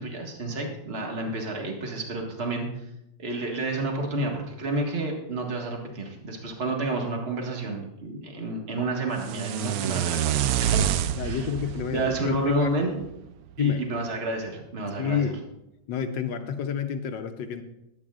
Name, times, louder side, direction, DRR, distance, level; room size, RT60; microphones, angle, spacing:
voice 1, 0.0-2.7 3.2-10.8 11.2-11.5 11.9-13.0 13.6-15.3, right 2 dB, 35° right, 1 dB, 1.8 m, -30 dB
sound 1, 9.2-13.3, right 10 dB, 85° right, 0.8 m, -28 dB
voice 2, 11.2-12.7 13.6-13.9 15.0-15.4 15.9-17.6, left 7 dB, 70° left, 8 dB, 1.3 m, -29 dB
21.5 x 9.0 x 2.4 m, 0.86 s
omnidirectional pair, 2.1 m